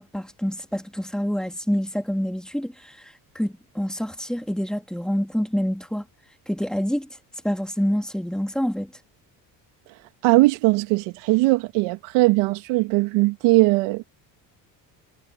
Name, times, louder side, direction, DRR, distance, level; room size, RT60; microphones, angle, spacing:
voice 1, 0.0-6.0 6.5-7.1 7.4-8.9, equal, ahead, 3.3 m, -27 dB
voice 2, 10.2-14.0, right 21 dB, 75° right, 2.6 m, -19 dB
supercardioid pair, 70°, 48 cm